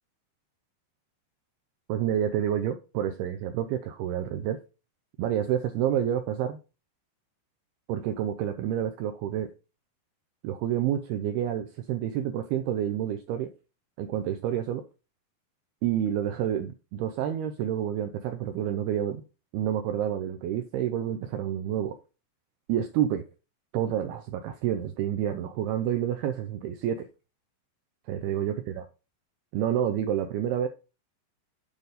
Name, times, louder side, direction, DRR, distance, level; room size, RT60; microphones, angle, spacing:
voice 1, 1.9-4.6 5.2-6.6 7.9-9.5 10.4-13.5 14.0-14.8 15.8-19.2 19.5-21.9 22.7-23.2 23.7-27.1 28.1-28.8 29.5-30.7, right 10 dB, 80° right, 7 dB, 2.3 m, -29 dB
9.2 x 4.0 x 5.0 m, 0.31 s
omnidirectional pair, 5.2 m